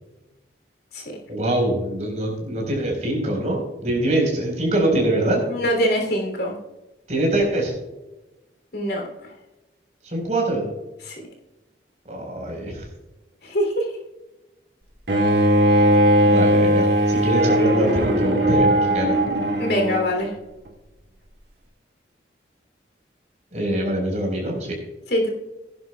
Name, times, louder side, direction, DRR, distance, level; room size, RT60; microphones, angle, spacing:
voice 1, 1.3-5.4 7.1-7.7 10.0-10.6 12.1-12.9 16.2-19.2 23.5-24.8, right 1 dB, 40° right, 0 dB, 4.3 m, -23 dB
voice 2, 5.5-6.6 8.7-9.3 11.0-11.2 13.4-13.9 19.6-20.3 25.1-25.3, equal, 65° left, 2 dB, 3.0 m, -23 dB
Bowed string instrument, 15.1-20.1, right 1 dB, 65° right, 1.8 m, -18 dB
17.0 x 10.5 x 2.3 m, 1.0 s
head